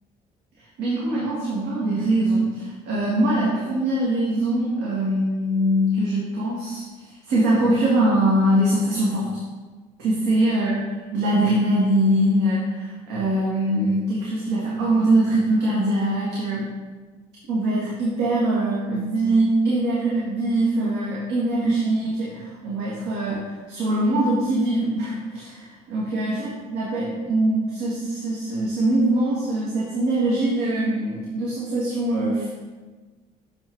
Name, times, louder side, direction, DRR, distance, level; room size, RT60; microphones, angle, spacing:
voice 1, 0.8-9.3 10.0-10.7 11.1-16.7 17.5-32.5, right 1 dB, 85° right, -6 dB, 1.9 m, -22 dB
6.9 x 5.7 x 4.6 m, 1.3 s
cardioid pair, 110°, 17 cm